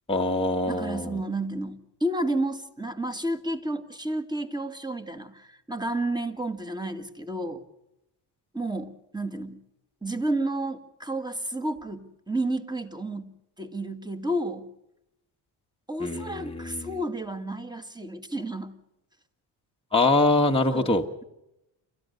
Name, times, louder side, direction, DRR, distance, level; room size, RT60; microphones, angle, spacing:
voice 1, 0.1-1.2 16.0-16.9 19.9-21.0, left 2 dB, 10° left, 2 dB, 1.4 m, -24 dB
voice 2, 0.7-7.6 8.5-9.6 10.0-14.7 15.9-18.8 20.7-21.0, right 1 dB, 10° right, 9 dB, 2.0 m, -31 dB
29.0 x 13.5 x 6.8 m, 0.87 s
supercardioid pair, 65°, 48 cm